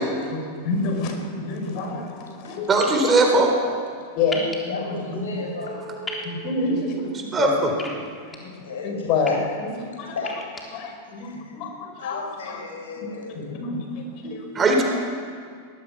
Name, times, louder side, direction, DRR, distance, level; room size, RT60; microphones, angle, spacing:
voice 1, 0.3-2.8 4.1-5.3 6.2-7.7 8.1-8.5 8.8-9.3 9.6-10.2 10.7-12.2 12.5-12.6 13.3-14.8, left 3 dB, 40° left, 3 dB, 5.0 m, -28 dB
voice 2, 2.7-3.5 5.9-6.4 7.3-7.7 14.5-14.8, right 3 dB, 20° right, 2 dB, 4.3 m, -20 dB
sound 1, 2.8-3.0 4.3-4.6 6.0-6.3 7.8-8.4 9.0-9.3 10.2-10.6, left 3 dB, 15° left, 3.7 m, -34 dB
voice 3, 4.7-5.8 8.4-9.4 10.1-10.4 11.2-11.6 12.0-13.4, left 4 dB, 65° left, 1 dB, 6.4 m, -34 dB
22.5 x 20.0 x 6.1 m, 2.1 s
figure-of-eight pair, 90°, 0 cm